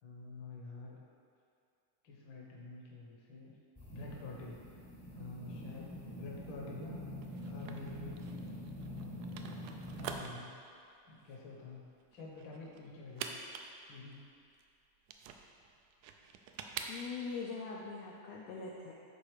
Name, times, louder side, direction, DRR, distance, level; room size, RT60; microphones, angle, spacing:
voice 1, 0.0-1.0 2.0-3.6 3.9-4.6 5.1-7.0 7.5-8.3 9.7-10.5 11.0-11.8 12.1-13.4 13.9-14.2, left 3 dB, 55° left, -2 dB, 1.4 m, -48 dB
sound 1, 3.7-10.2, left 1 dB, 20° left, 0.6 m, -45 dB
sound 2, 7.2-17.4, right 6 dB, 80° right, 2.0 m, -47 dB
voice 2, 16.9-18.9, left 4 dB, 75° left, -3 dB, 1.6 m, -42 dB
11.5 x 4.1 x 4.8 m, 2.5 s
omnidirectional pair, 3.6 m